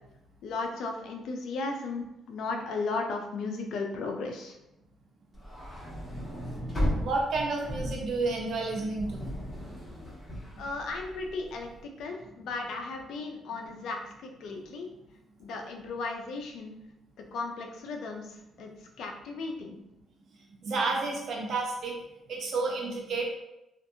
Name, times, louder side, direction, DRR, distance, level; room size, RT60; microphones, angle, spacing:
voice 1, 0.4-4.6 10.6-14.9 15.4-16.7 17.3-18.7 19.0-19.8, left 3 dB, 80° left, 3 dB, 0.5 m, -35 dB
sound 1, 5.3-11.7, equal, 20° left, 1.2 m, -35 dB
voice 2, 6.7-9.4 10.5-10.7 14.4-14.6 20.4-21.9 22.3-23.3, right 3 dB, 65° right, -1 dB, 0.8 m, -31 dB
2.6 x 2.5 x 2.6 m, 0.88 s
cardioid pair, 90°, 0 cm